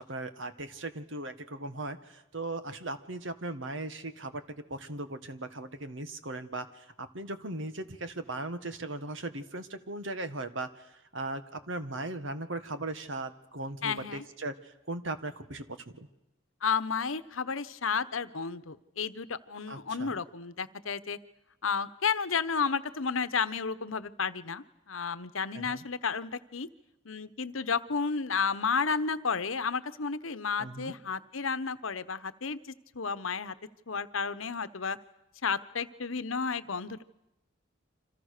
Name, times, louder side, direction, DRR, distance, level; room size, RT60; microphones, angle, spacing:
voice 1, 0.0-4.4 4.7-16.1 19.7-20.1 25.5-25.8 30.6-31.0, right 2 dB, 70° right, 10 dB, 1.8 m, -38 dB
voice 2, 13.8-14.2 16.6-21.2 21.6-26.7 27.0-32.6 32.9-33.5 33.9-35.0 35.4-37.0, left 5 dB, 85° left, 14 dB, 1.1 m, -32 dB
29.5 x 26.0 x 6.7 m, 0.90 s
head